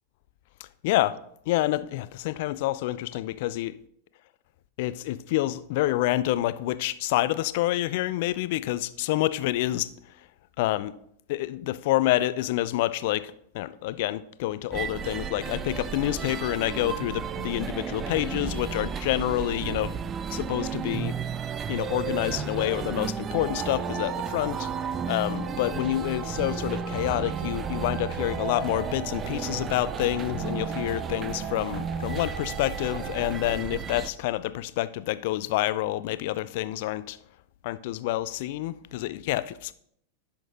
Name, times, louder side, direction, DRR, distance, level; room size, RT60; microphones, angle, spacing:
voice 1, 0.8-1.2 1.5-3.7 4.8-9.9 10.6-11.0 11.3-20.0 20.3-21.1 21.7-24.7 25.1-37.2 37.6-39.7, left 15 dB, 50° left, 0.4 m, -28 dB
sound 1, 14.7-34.1, right 7 dB, 25° right, 0.3 m, -33 dB
sound 2, 23.3-33.3, right 5 dB, 45° right, 1.5 m, -40 dB
15.5 x 6.0 x 2.6 m
figure-of-eight pair, 90°, 0 cm